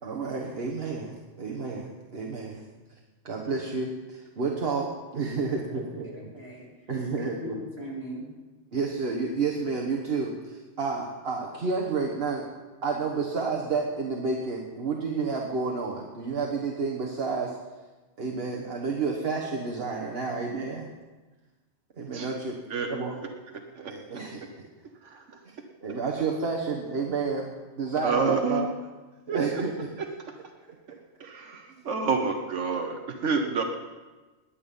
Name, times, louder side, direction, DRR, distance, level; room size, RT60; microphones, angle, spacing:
voice 1, 0.0-2.6 3.2-6.1 6.9-7.5 8.7-12.5 12.8-17.6 18.2-20.9 22.0-22.6 22.9-23.2 23.8-24.4 25.5-25.6 25.8-28.7 29.3-29.7 33.5-33.6, right 4 dB, 55° right, -1 dB, 1.5 m, -30 dB
voice 2, 4.5-5.0 5.5-6.7 7.2-8.3, equal, 20° right, -5 dB, 4.0 m, -40 dB
voice 3, 23.7-24.2 25.0-25.4 28.0-28.6 29.3-29.6 30.0-30.1 31.2-33.6, right 4 dB, 80° right, 4 dB, 1.4 m, -29 dB
20.0 x 8.7 x 5.5 m, 1.2 s
omnidirectional pair, 1.2 m